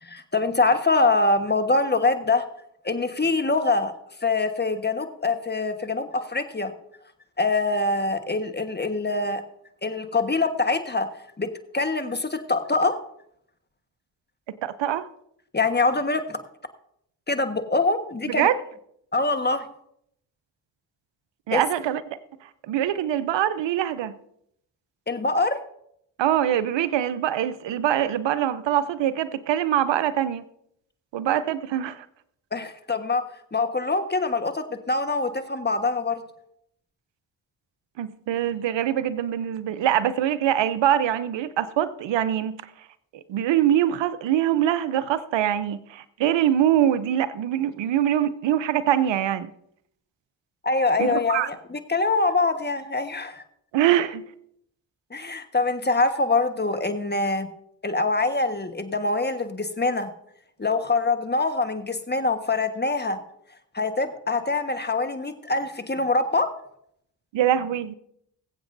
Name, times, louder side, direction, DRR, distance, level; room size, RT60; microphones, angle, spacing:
voice 1, 0.0-2.4 2.8-3.9 4.2-6.7 7.4-9.4 9.8-11.1 11.4-11.5 11.7-13.0 15.5-16.4 17.3-18.5 19.1-19.6 21.5-21.6 25.1-25.6 32.5-33.2 33.5-36.2 50.6-53.4 55.1-57.5 57.8-60.1 60.6-63.2 63.7-66.5, left 3 dB, 25° left, 1.3 m, -24 dB
voice 2, 14.5-15.1 18.3-18.6 21.5-22.0 22.4-24.1 26.2-30.4 31.1-32.1 38.0-42.6 43.1-49.5 51.0-51.5 53.7-54.2 67.3-67.9, right 11 dB, 80° right, 0.7 m, -23 dB
21.0 x 8.0 x 2.6 m
supercardioid pair, 45°, 44 cm